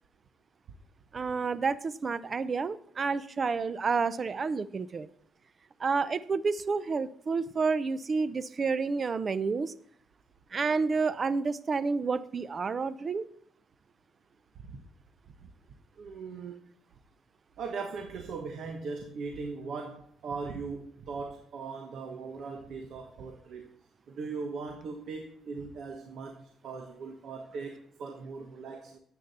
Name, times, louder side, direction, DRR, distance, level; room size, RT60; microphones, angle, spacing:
voice 1, 1.1-5.1 5.8-9.7 10.5-13.3, right 4 dB, 40° right, 16 dB, 0.5 m, -29 dB
voice 2, 16.0-16.7 17.6-23.7 24.1-29.0, right 4 dB, 70° right, 3 dB, 1.2 m, -39 dB
10.0 x 8.3 x 4.2 m, 0.63 s
cardioid pair, 90°, 0 cm